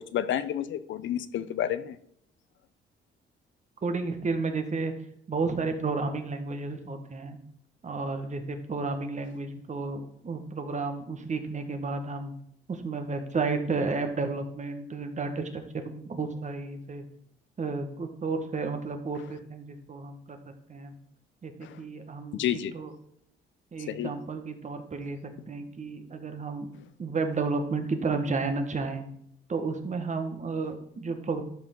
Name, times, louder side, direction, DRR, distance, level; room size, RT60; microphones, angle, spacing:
voice 1, 0.1-2.0 21.6-21.8 22.3-22.7 23.9-24.1, left 11 dB, 70° left, 14 dB, 0.6 m, -30 dB
voice 2, 3.8-4.9 5.3-7.4 7.8-12.3 12.7-17.0 17.6-20.4 20.7-20.9 21.4-22.9 23.7-26.7 27.0-29.0 29.5-31.4, right 4 dB, 35° right, 6 dB, 1.5 m, -32 dB
12.0 x 5.2 x 3.8 m, 0.71 s
cardioid pair, 90°, 20 cm